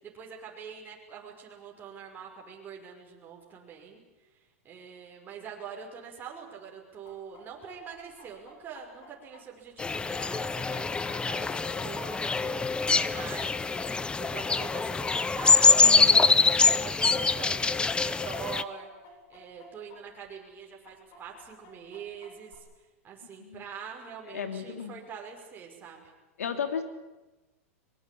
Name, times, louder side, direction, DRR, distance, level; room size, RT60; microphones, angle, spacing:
voice 1, 0.0-4.0 4.6-18.9 19.3-22.7 23.0-26.0, right 7 dB, 25° right, -1 dB, 5.8 m, -44 dB
Chicken rooster, 7.0-15.3 15.6-20.0 20.2-20.3 20.8-22.5, left 3 dB, 45° left, 7.6 m, -52 dB
sound 1, 9.8-18.6, left 4 dB, 10° left, 0.8 m, -24 dB
voice 2, 15.8-16.1 23.4-23.6 24.3-25.0 26.4-26.8, left 7 dB, 85° left, 8 dB, 3.3 m, -34 dB
24.0 x 21.5 x 8.7 m, 1.1 s
hypercardioid pair, 115°, 8 cm